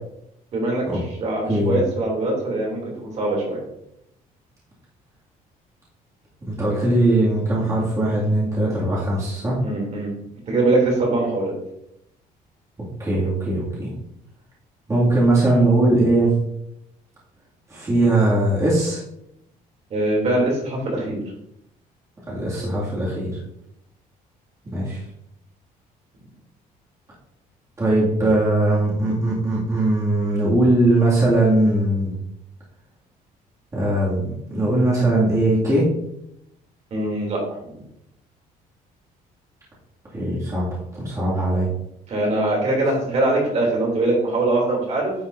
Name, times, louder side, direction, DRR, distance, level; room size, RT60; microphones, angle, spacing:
voice 1, 0.5-3.6 9.6-10.1 10.5-11.5 19.9-21.2 36.9-37.7 42.1-45.1, right 2 dB, 45° right, -2 dB, 3.2 m, -22 dB
voice 2, 1.5-1.8 6.5-9.6 13.0-13.9 14.9-16.3 17.7-19.0 22.3-23.3 24.7-25.0 27.8-32.2 33.7-35.9 40.1-41.7, right 1 dB, 20° right, -8 dB, 2.5 m, -20 dB
10.0 x 5.6 x 2.8 m, 0.78 s
cardioid pair, 140°, 15 cm